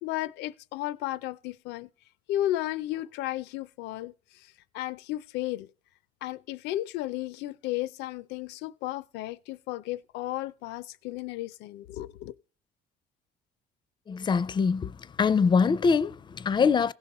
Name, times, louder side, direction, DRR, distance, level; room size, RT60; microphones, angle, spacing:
voice 1, 0.0-1.9 2.3-4.1 4.7-5.7 6.2-12.3, left 15 dB, 90° left, 0.6 m, -33 dB
voice 2, 14.1-16.9, left 5 dB, 25° left, 0.4 m, -24 dB
16.5 x 5.6 x 4.2 m
cardioid pair, 110°, 17 cm